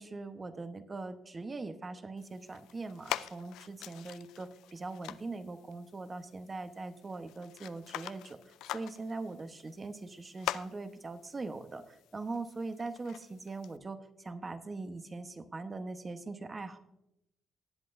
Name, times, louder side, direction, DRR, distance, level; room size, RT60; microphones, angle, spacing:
voice 1, 0.0-8.4 8.7-16.8, right 3 dB, 30° right, 9 dB, 1.0 m, -41 dB
sound 1, 2.2-13.8, left 13 dB, 90° left, 0.3 m, -45 dB
19.0 x 7.7 x 2.6 m, 0.85 s
cardioid pair, 90°, 0 cm